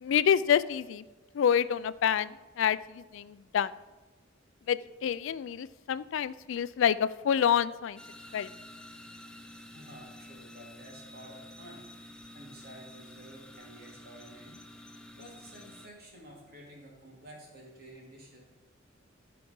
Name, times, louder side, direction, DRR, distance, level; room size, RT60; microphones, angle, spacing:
voice 1, 0.0-1.0 1.3-3.7 4.7-8.0 8.3-8.5, left 8 dB, 65° left, 16 dB, 0.3 m, -27 dB
sound 1, 8.0-15.9, left 1 dB, 5° left, 0.6 m, -50 dB
voice 2, 9.6-14.6 15.1-18.4, right 1 dB, 50° right, -2 dB, 2.7 m, -51 dB
14.0 x 4.8 x 5.3 m, 1.2 s
head